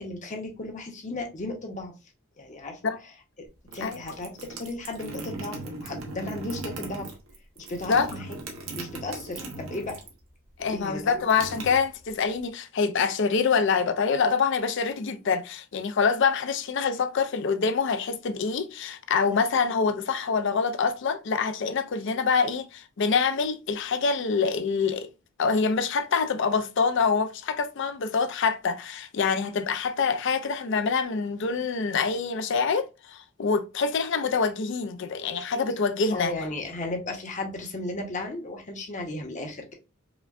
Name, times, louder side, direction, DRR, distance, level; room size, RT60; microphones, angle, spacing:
voice 1, 0.0-1.9 2.4-2.9 3.4-3.5 3.7-7.1 7.6-8.3 8.7-10.0 10.7-11.2 36.1-39.7, left 2 dB, 35° left, 0.8 m, -35 dB
sound 1, 3.5-10.2 10.5-12.4, right 2 dB, 80° right, 0.9 m, -39 dB
voice 2, 10.6-25.1 25.4-36.3, left 5 dB, 60° left, 0.4 m, -25 dB
5.0 x 2.2 x 2.4 m
head